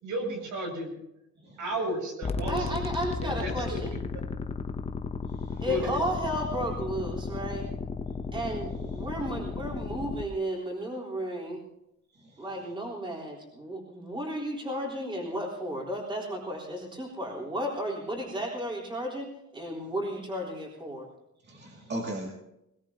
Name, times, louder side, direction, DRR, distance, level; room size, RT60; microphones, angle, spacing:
voice 1, 0.0-0.9 1.6-2.7 3.2-4.0 5.5-6.0, right 1 dB, 80° right, 2 dB, 6.5 m, -33 dB
sound 1, 2.2-10.2, left 4 dB, 20° left, 0.7 m, -34 dB
voice 2, 2.4-3.9 5.6-7.7 8.3-11.6 12.4-21.1, equal, 15° right, -3 dB, 3.7 m, -33 dB
voice 3, 5.3-5.6 9.0-9.1 12.2-12.5 21.5-22.3, right 1 dB, 35° right, -1 dB, 2.3 m, -38 dB
20.5 x 20.5 x 2.8 m, 0.82 s
cardioid pair, 175°, 30 cm